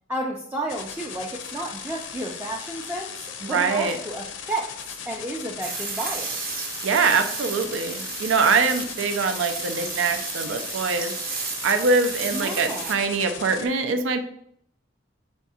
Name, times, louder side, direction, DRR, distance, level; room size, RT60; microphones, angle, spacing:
voice 1, 0.1-4.7 5.1-6.4 12.3-13.0, right 1 dB, 10° right, -2 dB, 0.4 m, -32 dB
sound 1, 0.7-13.7, left 7 dB, 75° left, 0.5 m, -38 dB
voice 2, 3.4-4.0 6.8-11.1 11.6-14.2, right 4 dB, 90° right, 7 dB, 0.5 m, -23 dB
sound 2, 5.6-12.9, right 5 dB, 50° right, 0.7 m, -33 dB
3.6 x 3.4 x 4.1 m, 0.68 s
head